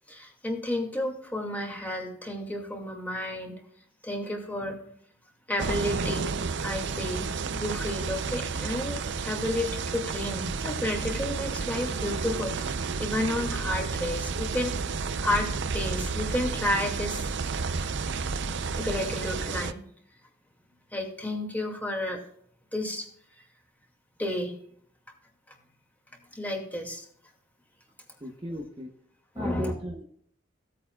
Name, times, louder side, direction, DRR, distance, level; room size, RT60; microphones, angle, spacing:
voice 1, 0.1-3.6 4.0-4.8 5.5-6.4 6.6-17.2 18.7-19.9 20.9-22.2 22.7-23.1 24.2-24.5 26.3-27.0 29.4-29.7, left 1 dB, 10° left, 1 dB, 2.3 m, -31 dB
sound 1, 5.6-19.7, right 5 dB, 65° right, 0.6 m, -31 dB
voice 2, 28.2-28.9 29.3-30.0, equal, 25° right, 1 dB, 1.0 m, -35 dB
17.0 x 8.5 x 2.4 m, 0.63 s
head